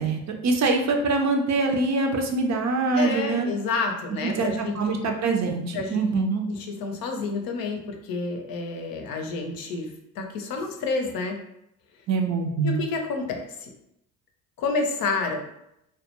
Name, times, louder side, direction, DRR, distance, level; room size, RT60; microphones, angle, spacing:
voice 1, 0.0-3.5 4.1-6.5 12.1-12.8, right 3 dB, 50° right, 3 dB, 0.5 m, -24 dB
voice 2, 2.9-4.7 5.7-6.0 6.5-9.9 10.2-11.4 12.6-13.7 14.6-15.4, left 3 dB, 65° left, 3 dB, 0.6 m, -29 dB
2.3 x 2.1 x 2.9 m, 0.81 s
supercardioid pair, 75°, 38 cm